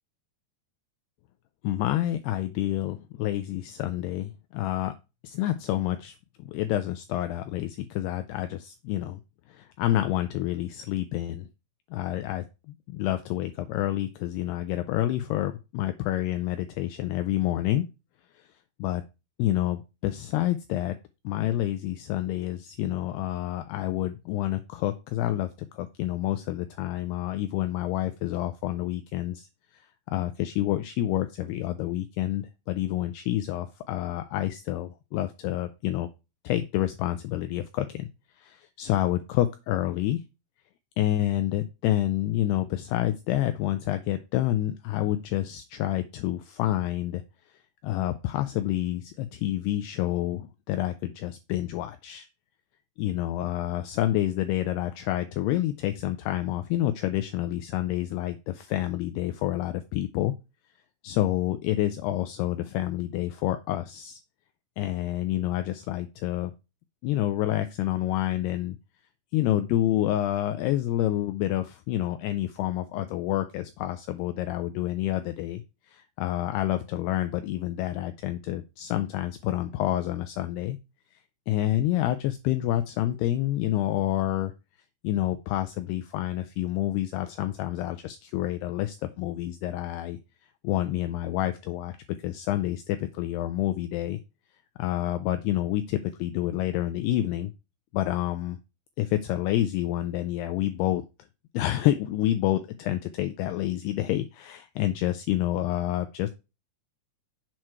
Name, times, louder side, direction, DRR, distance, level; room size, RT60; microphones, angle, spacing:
voice 1, 1.6-5.0 5.2-9.2 9.5-11.5 11.9-17.9 18.4-18.5 18.8-19.0 19.4-21.0 21.2-29.5 29.7-29.8 30.1-36.1 36.4-38.1 38.4-40.2 41.0-47.2 47.8-52.3 53.0-60.3 61.0-64.2 64.8-66.5 67.0-68.8 69.3-80.8 81.1-81.2 81.5-84.5 85.0-90.2 90.6-91.9 92.2-94.2 94.8-97.5 97.9-98.6 99.0-101.0 101.5-106.3, left 14 dB, 85° left, 9 dB, 2.3 m, -28 dB
7.5 x 4.5 x 4.6 m, 0.28 s
omnidirectional pair, 5.1 m